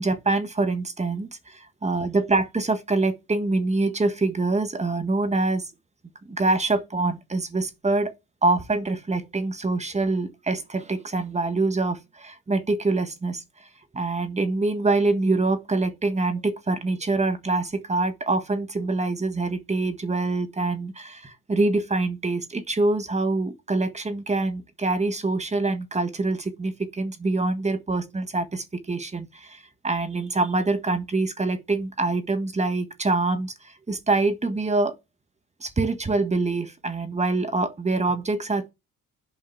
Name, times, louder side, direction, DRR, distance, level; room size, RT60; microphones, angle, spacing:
voice 1, 0.0-5.7 6.2-8.1 8.4-13.4 13.9-34.9 35.6-38.7, right 3 dB, 20° right, 1.5 m, -25 dB
7.9 x 5.4 x 7.1 m
cardioid pair, 90°, 30 cm